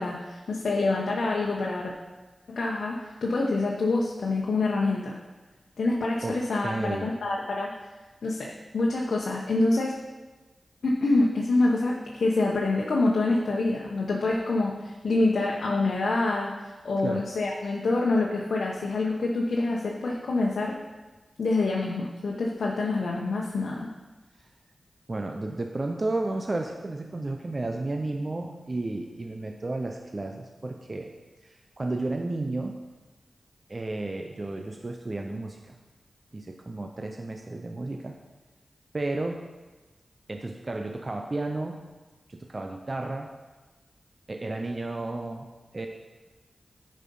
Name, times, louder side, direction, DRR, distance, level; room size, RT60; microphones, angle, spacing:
voice 1, 0.0-1.9 2.5-5.2 5.8-7.7 8.2-9.9 10.8-20.8 21.4-23.9, left 2 dB, 80° left, -2 dB, 1.0 m, -26 dB
voice 2, 6.2-7.1 17.0-17.2 25.1-31.1 31.4-32.8 33.7-35.7 36.3-38.2 38.9-39.4 40.3-41.8 42.3-43.3 44.3-45.5 45.7-45.9, right 2 dB, 40° right, 3 dB, 0.7 m, -32 dB
9.9 x 5.3 x 5.4 m, 1.2 s
cardioid pair, 55°, 0 cm